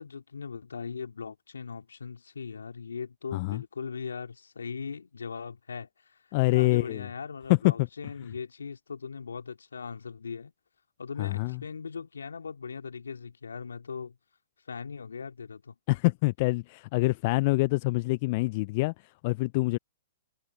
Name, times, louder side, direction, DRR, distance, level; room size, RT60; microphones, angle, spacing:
voice 1, 0.0-6.2 6.5-10.5 11.0-14.2 14.7-15.7, left 5 dB, 80° left, 2.5 m, -39 dB
voice 2, 3.3-3.6 6.3-7.1 7.5-7.9 11.2-11.6 15.9-19.8, left 23 dB, 45° left, 0.5 m, -26 dB
hypercardioid pair, 115°, 0 cm